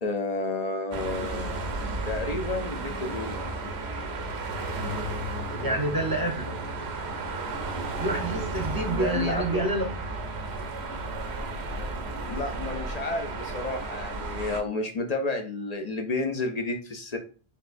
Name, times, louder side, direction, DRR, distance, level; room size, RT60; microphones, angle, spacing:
voice 1, 0.0-1.5 2.0-3.4 8.9-9.7 12.3-17.2, left 3 dB, 45° left, 5 dB, 0.6 m, -31 dB
sound 1, 0.9-14.6, right 2 dB, 90° right, 1.0 m, -33 dB
voice 2, 5.5-6.5 8.0-9.9, right 2 dB, 25° right, 3 dB, 0.7 m, -28 dB
5.0 x 3.2 x 2.5 m, 0.37 s
omnidirectional pair, 1.1 m